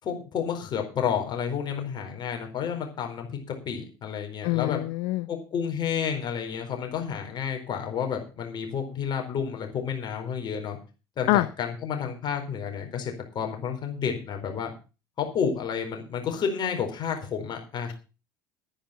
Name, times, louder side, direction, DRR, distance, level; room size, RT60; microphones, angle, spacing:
voice 1, 0.0-4.8 5.3-10.8 11.2-14.7 15.2-17.9, left 7 dB, 40° left, 4 dB, 4.5 m, -30 dB
voice 2, 4.4-5.3 11.3-11.5, left 18 dB, 60° left, 16 dB, 0.6 m, -24 dB
11.5 x 10.0 x 5.8 m, 0.33 s
figure-of-eight pair, 65°, 11 cm